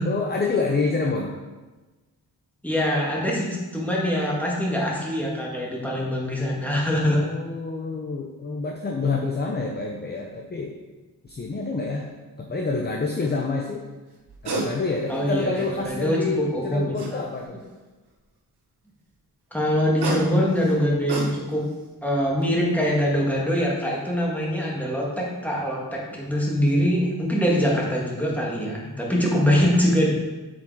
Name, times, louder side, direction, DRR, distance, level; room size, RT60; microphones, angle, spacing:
voice 1, 0.0-1.4 7.0-10.7 11.2-12.1 12.4-13.8 14.4-17.6 29.2-29.7, left 3 dB, 25° left, 1 dB, 0.7 m, -27 dB
voice 2, 2.6-7.3 15.1-16.2 16.5-17.2 19.5-21.6 22.0-30.1, equal, 5° left, -3 dB, 1.7 m, -23 dB
sound 1, 11.3-11.5 14.2-14.7 15.1-15.9 16.9-17.6 19.7-21.7 22.2-22.4, right 3 dB, 85° right, 1.2 m, -31 dB
7.1 x 5.1 x 4.7 m, 1.2 s
wide cardioid pair, 130°, 38 cm